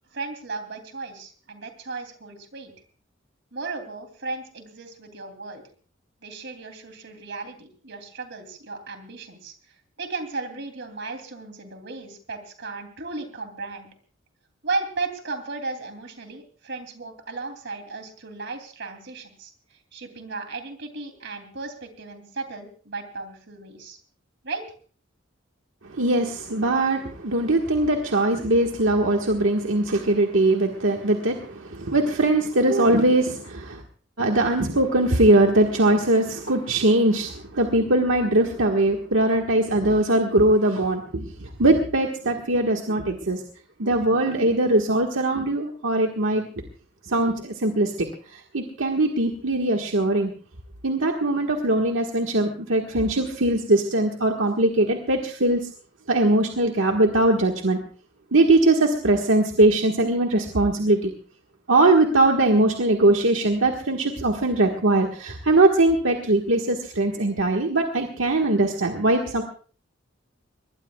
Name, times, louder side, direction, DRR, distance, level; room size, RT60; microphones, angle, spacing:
voice 1, 0.1-2.7 3.5-5.6 6.2-9.5 10.0-13.9 14.6-19.5 19.9-24.0 24.4-24.6, right 3 dB, 60° right, 6 dB, 3.0 m, -35 dB
voice 2, 25.8-33.8 34.2-43.4 43.8-46.4 47.0-50.3 50.8-55.7 56.1-57.8 58.3-61.1 61.7-69.4, right 2 dB, 80° right, 2 dB, 1.6 m, -21 dB
23.0 x 20.0 x 2.4 m, 0.41 s
head